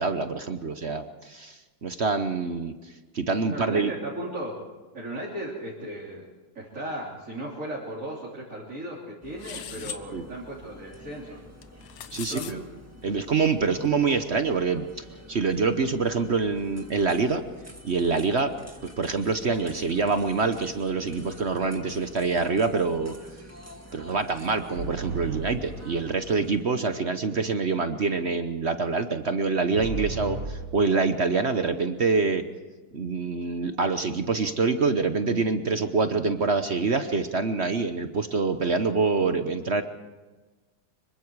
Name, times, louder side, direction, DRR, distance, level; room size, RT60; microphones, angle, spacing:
voice 1, 0.0-3.9 9.7-10.2 12.1-12.6 13.0-17.4 17.8-18.5 19.0-23.1 23.9-32.4 32.9-39.8, right 4 dB, 55° right, 9 dB, 0.7 m, -26 dB
voice 2, 3.5-4.6 4.9-6.3 6.6-11.4 12.1-12.5, right 1 dB, 35° right, -5 dB, 3.8 m, -36 dB
sound 1, 9.2-26.6, equal, 10° right, 1.5 m, -49 dB
sound 2, 9.4-10.0 11.6-12.5, left 9 dB, 85° left, 1.8 m, -39 dB
sound 3, 24.7-26.4 29.7-30.6, right 3 dB, 80° right, 3.2 m, -34 dB
25.5 x 23.5 x 4.7 m, 1.3 s
omnidirectional pair, 2.4 m